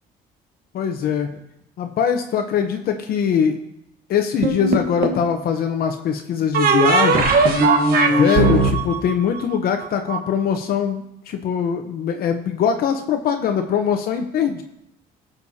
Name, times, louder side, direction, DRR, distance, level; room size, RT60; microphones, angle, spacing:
voice 1, 0.7-1.3 1.8-3.6 4.1-7.3 8.1-14.6, left 7 dB, 65° left, 5 dB, 0.8 m, -22 dB
sound 1, 4.4-5.3 6.5-10.2, right 3 dB, 65° right, 1.4 m, -18 dB
18.5 x 6.8 x 2.8 m, 0.82 s
cardioid pair, 110°, 17 cm